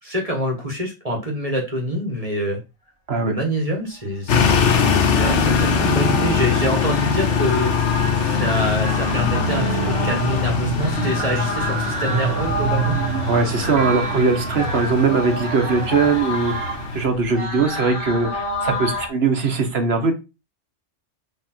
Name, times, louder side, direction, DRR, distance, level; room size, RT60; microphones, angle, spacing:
voice 1, 0.0-2.6 3.2-4.5 4.7-7.9 8.2-13.0, equal, 30° right, 1 dB, 1.6 m, -26 dB
sound 1, 4.3-17.0, left 6 dB, 80° left, 1.2 m, -22 dB
sound 2, 4.9-19.1, left 2 dB, 25° left, 1.5 m, -30 dB
sound 3, 8.8-16.9, right 10 dB, 85° right, 0.9 m, -28 dB
voice 2, 13.3-16.5 16.9-20.1, right 4 dB, 60° right, 5 dB, 1.4 m, -20 dB
6.6 x 3.3 x 4.4 m, 0.27 s
omnidirectional pair, 1.2 m